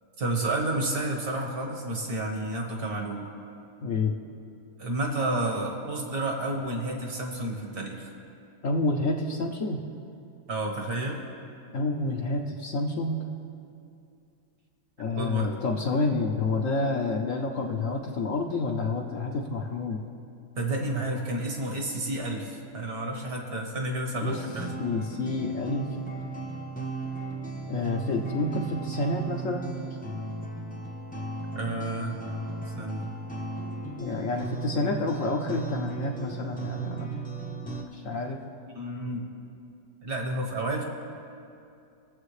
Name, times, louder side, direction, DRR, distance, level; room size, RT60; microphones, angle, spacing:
voice 1, 0.2-3.3 4.8-8.1 10.5-11.2 15.0-15.5 20.6-24.7 31.5-32.2 32.8-33.1 38.8-39.3 40.0-40.8, right 2 dB, 60° right, 1 dB, 1.8 m, -30 dB
voice 2, 3.8-4.1 8.6-9.8 11.7-13.3 15.0-20.0 24.2-24.4 24.8-25.9 27.7-29.8 34.0-37.1 37.9-38.4, left 3 dB, 55° left, 1 dB, 1.0 m, -29 dB
sound 1, 24.2-37.8, right 3 dB, 10° left, 0.6 m, -36 dB
22.0 x 7.5 x 3.2 m, 2.6 s
omnidirectional pair, 1.9 m